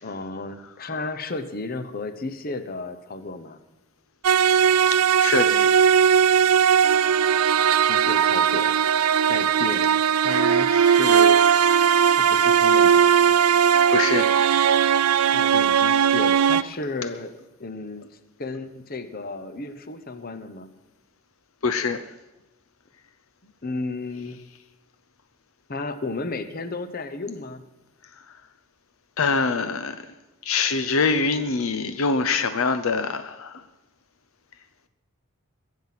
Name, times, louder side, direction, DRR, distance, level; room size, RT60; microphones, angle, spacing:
voice 1, 0.0-3.6 7.8-8.7 9.3-11.4 12.2-13.4 15.3-17.3 17.6-18.0 18.4-20.7 23.4-24.4 25.7-27.6, left 3 dB, 40° left, 0.9 m, -33 dB
sound 1, 4.2-16.6, right 8 dB, 90° right, 0.5 m, -18 dB
voice 2, 4.9-5.7 13.9-14.4 21.6-22.0 29.2-30.1 30.4-33.6, left 4 dB, 70° left, 0.7 m, -24 dB
22.0 x 7.5 x 5.9 m
head